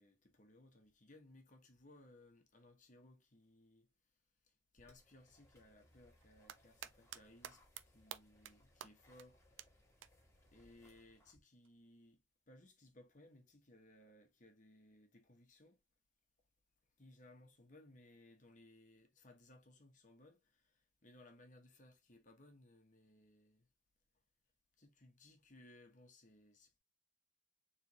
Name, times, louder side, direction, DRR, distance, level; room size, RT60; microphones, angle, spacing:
voice 1, 0.0-3.9 4.4-9.7 10.5-15.8 17.0-23.7 24.8-26.8, left 1 dB, 45° left, 1.1 m, -63 dB
sound 1, 4.8-11.4, left 1 dB, 15° left, 1.6 m, -69 dB
sound 2, 6.2-7.2 7.4-7.8 8.1-8.5 8.8-8.9 9.2-9.3 9.6-9.7 10.0-10.1 11.6-11.7, right 10 dB, 90° right, 0.4 m, -48 dB
4.4 x 3.3 x 3.0 m
head